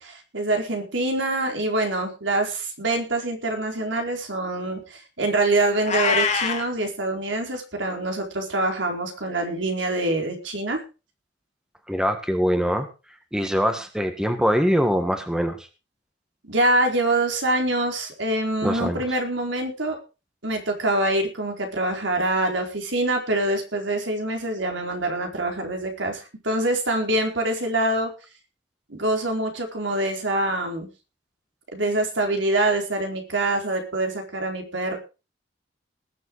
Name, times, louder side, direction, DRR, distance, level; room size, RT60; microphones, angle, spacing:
voice 1, 0.0-10.8 16.4-20.0 20.4-28.1 28.9-30.9 31.7-35.0, right 2 dB, 80° right, 3 dB, 4.5 m, -25 dB
Meow, 5.8-6.7, left 5 dB, 40° left, 2.1 m, -23 dB
voice 2, 11.9-12.9 13.3-15.6 18.6-19.0, equal, 5° right, 7 dB, 1.6 m, -23 dB
20.0 x 7.6 x 4.8 m, 0.32 s
head